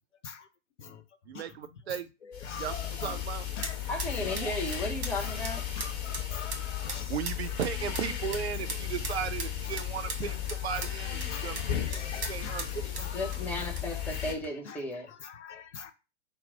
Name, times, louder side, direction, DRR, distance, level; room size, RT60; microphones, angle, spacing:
voice 1, 1.3-2.1 2.5-3.5 7.1-13.1, right 8 dB, 60° right, 0.5 m, -36 dB
voice 2, 2.3-3.2 3.6-3.8 4.1-4.8 5.2-5.4 5.8-7.1 7.9-8.0 8.6-8.7 9.1-9.2 9.7-9.8 10.2-10.4 10.7-13.7 14.7-15.9, left 6 dB, 75° left, 0.8 m, -44 dB
sound 1, 2.3-14.3, left 10 dB, 35° left, 1.1 m, -35 dB
sound 2, 2.9-14.5, right 4 dB, 30° right, 1.2 m, -43 dB
voice 3, 3.9-5.6 13.1-15.1, left 1 dB, 5° left, 0.5 m, -34 dB
4.3 x 2.1 x 3.8 m
figure-of-eight pair, 110°, 36 cm